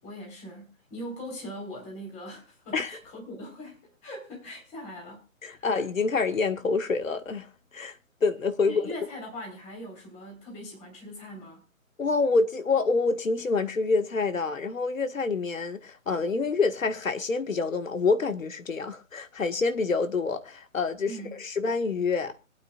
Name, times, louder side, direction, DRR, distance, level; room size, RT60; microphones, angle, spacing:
voice 1, 0.0-5.3 5.6-5.7 8.6-11.6 21.0-21.4, equal, 15° left, 4.0 m, -41 dB
voice 2, 5.4-7.5 7.7-7.9 8.2-8.9 12.0-22.3, left 4 dB, 70° left, 1.6 m, -27 dB
25.0 x 9.1 x 2.4 m
figure-of-eight pair, 145°, 42 cm